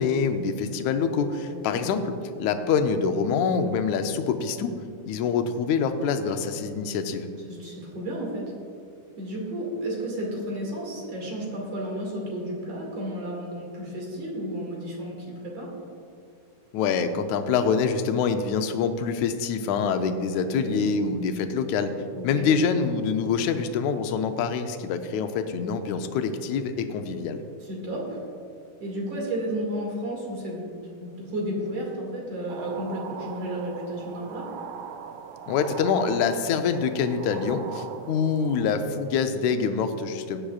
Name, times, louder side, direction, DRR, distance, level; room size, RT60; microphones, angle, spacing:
voice 1, 0.0-2.1 2.4-4.8 5.1-7.3 16.7-21.9 22.2-27.4 35.5-40.4, left 6 dB, 75° left, 7 dB, 1.9 m, -25 dB
voice 2, 1.5-1.8 7.5-8.5 9.2-15.7 20.4-20.8 22.1-22.5 27.6-28.2 28.8-30.7 31.0-34.5, right 1 dB, 55° right, -2 dB, 3.1 m, -32 dB
sound 1, 32.5-38.7, right 7 dB, 85° right, 2.0 m, -40 dB
17.0 x 10.0 x 2.4 m, 2.4 s
omnidirectional pair, 3.5 m